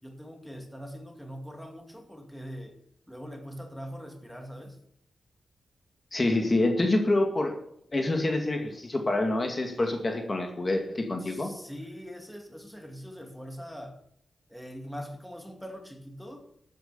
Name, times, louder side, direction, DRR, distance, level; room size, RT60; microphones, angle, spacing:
voice 1, 0.0-2.8 3.1-4.8 11.2-14.0 14.5-16.5, equal, ahead, 3 dB, 2.5 m, -42 dB
voice 2, 6.1-7.6 7.9-11.5, left 2 dB, 30° left, 3 dB, 2.1 m, -26 dB
13.0 x 9.3 x 6.9 m, 0.71 s
cardioid pair, 90°, 0 cm